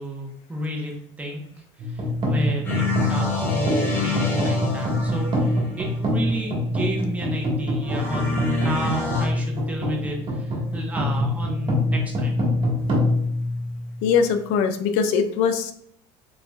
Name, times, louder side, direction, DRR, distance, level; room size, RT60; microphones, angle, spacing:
voice 1, 0.0-1.4 1.8-12.3, equal, 10° right, -1 dB, 1.0 m, -32 dB
sound 1, 1.8-14.2, left 1 dB, 45° right, 1.6 m, -25 dB
sound 2, 2.6-5.9 7.8-9.3, left 4 dB, 15° left, 1.1 m, -28 dB
voice 2, 14.0-15.7, left 6 dB, 75° left, 9 dB, 0.5 m, -21 dB
3.9 x 3.7 x 2.4 m, 0.65 s
cardioid pair, 125°, 12 cm